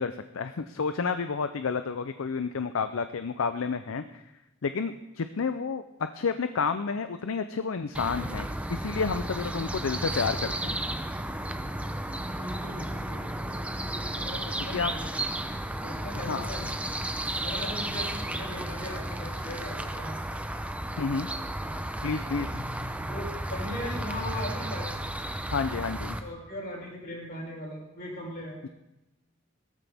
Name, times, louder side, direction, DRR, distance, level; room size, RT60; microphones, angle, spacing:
voice 1, 0.0-4.2 4.6-5.8 6.1-10.8 14.7-14.9 16.1-16.8 21.0-21.3 22.0-22.6 25.5-26.2 28.6-28.7, left 5 dB, 70° left, 10 dB, 0.5 m, -30 dB
sound 1, 7.9-26.2, right 1 dB, 5° right, 0.7 m, -33 dB
voice 2, 12.4-15.2 15.8-16.7 17.4-20.2 23.1-24.9 26.2-28.6, left 1 dB, 55° left, -4 dB, 6.1 m, -39 dB
17.0 x 13.5 x 3.5 m, 0.94 s
head